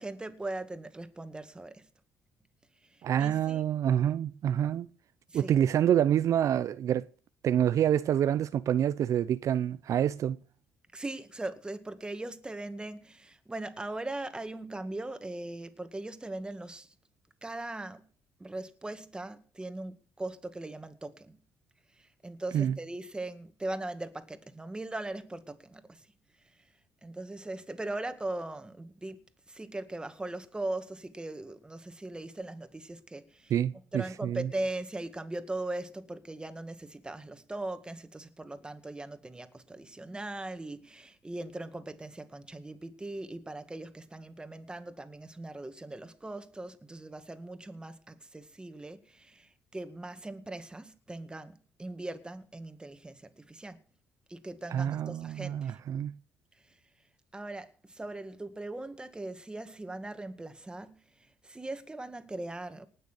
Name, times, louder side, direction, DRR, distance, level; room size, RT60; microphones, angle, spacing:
voice 1, 0.0-1.9 2.8-3.6 5.3-5.5 10.9-16.9 17.4-18.1 18.4-21.4 22.0-26.1 27.0-33.5 33.9-53.8 54.3-55.8 57.3-62.9, right 2 dB, 15° right, 2.1 m, -40 dB
voice 2, 3.0-4.9 5.3-7.1 7.4-10.4 22.5-22.8 33.5-34.5 54.7-56.1, right 10 dB, 60° right, 0.6 m, -27 dB
19.5 x 6.8 x 8.3 m
cardioid pair, 85°, 6 cm